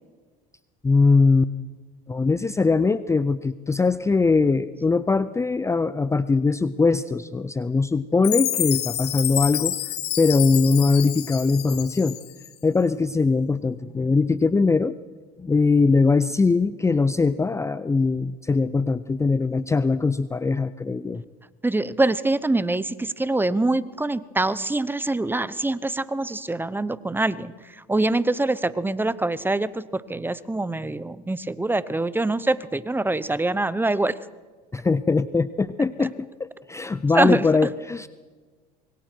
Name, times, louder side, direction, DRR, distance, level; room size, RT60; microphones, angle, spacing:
voice 1, 0.8-1.5 2.1-12.2 12.6-15.0 15.4-21.2 34.7-38.1, left 4 dB, 15° left, 14 dB, 0.6 m, -21 dB
Chime, 8.2-12.5, left 13 dB, 55° left, 1.4 m, -28 dB
voice 2, 21.6-27.5 27.9-34.2 36.0-36.1 37.1-37.4, right 2 dB, 10° right, 17 dB, 0.9 m, -24 dB
25.5 x 22.5 x 4.6 m, 1.4 s
hypercardioid pair, 85°, 20 cm